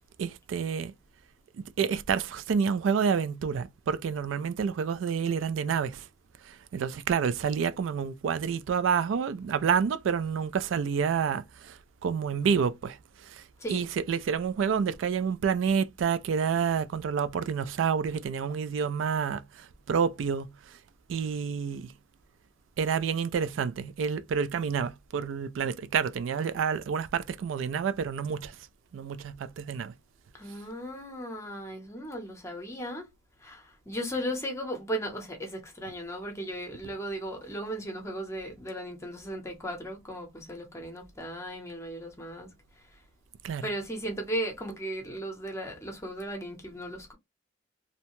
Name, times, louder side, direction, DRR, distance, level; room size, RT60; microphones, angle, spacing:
voice 1, 0.2-0.9 1.6-6.1 6.4-13.0 13.2-13.4 13.7-20.8 21.1-21.9 22.8-28.6 28.9-29.9 43.4-43.6, right 6 dB, 85° right, 0.3 m, -29 dB
voice 2, 30.3-33.1 33.4-42.5 43.6-47.1, right 1 dB, 15° left, 0.7 m, -36 dB
2.7 x 2.1 x 2.9 m
head